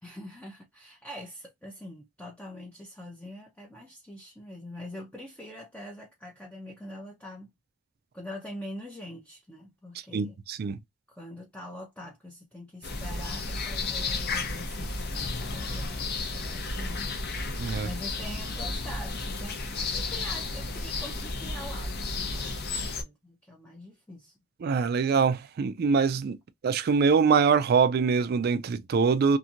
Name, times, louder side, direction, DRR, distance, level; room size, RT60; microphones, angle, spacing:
voice 1, 0.0-7.5 8.1-10.4 11.1-17.3 17.8-24.3, left 1 dB, 5° left, 0.5 m, -44 dB
voice 2, 10.1-10.8 17.6-17.9 24.6-26.4 26.6-29.4, right 5 dB, 50° right, 0.3 m, -24 dB
sound 1, 12.8-23.0, left 3 dB, 50° left, 0.6 m, -33 dB
2.9 x 2.6 x 2.4 m
head